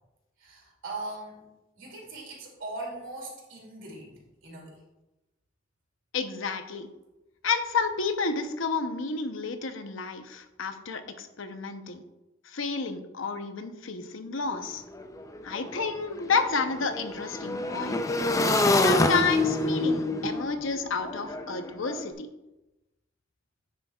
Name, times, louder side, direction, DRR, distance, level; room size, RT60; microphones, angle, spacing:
voice 1, 0.4-1.5 1.8-4.8, right 2 dB, 75° right, -1 dB, 2.6 m, -40 dB
voice 2, 6.1-6.9 7.4-12.0 12.5-14.8 15.4-18.0 18.7-22.3, left 4 dB, 85° left, 8 dB, 0.7 m, -30 dB
Motorcycle / Engine, 14.5-14.6 14.9-22.0, left 2 dB, 15° left, 0.4 m, -27 dB
9.7 x 7.3 x 2.3 m, 0.99 s
head